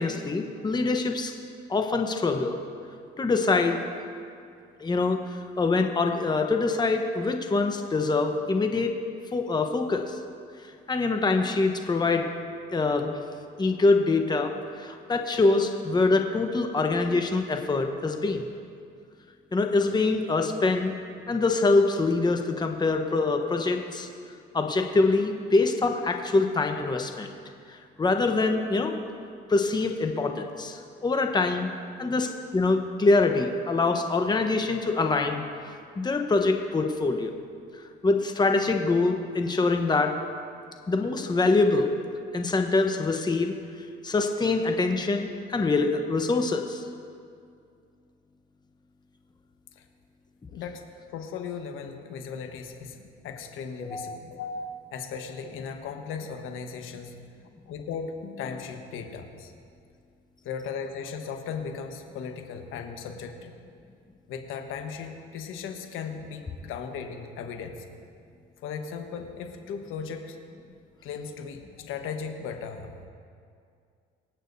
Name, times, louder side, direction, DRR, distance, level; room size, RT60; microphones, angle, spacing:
voice 1, 0.0-1.3 1.7-2.6 3.2-3.8 4.8-9.0 9.3-10.2 10.9-12.3 12.7-13.1 13.6-18.5 19.5-20.9 21.3-24.1 24.5-27.3 27.7-28.9 29.5-31.7 32.0-35.4 36.0-37.3 38.0-40.2 40.9-41.9 42.3-43.5 44.0-46.8 53.9-54.2, left 3 dB, 20° left, 4 dB, 1.0 m, -24 dB
voice 2, 50.5-50.8 51.1-53.0 53.2-57.1 57.7-59.5 60.4-63.5 64.3-67.8 68.6-70.4 71.0-72.9, left 6 dB, 75° left, 5 dB, 1.2 m, -37 dB
26.0 x 8.7 x 2.7 m, 2.3 s
cardioid pair, 95°, 21 cm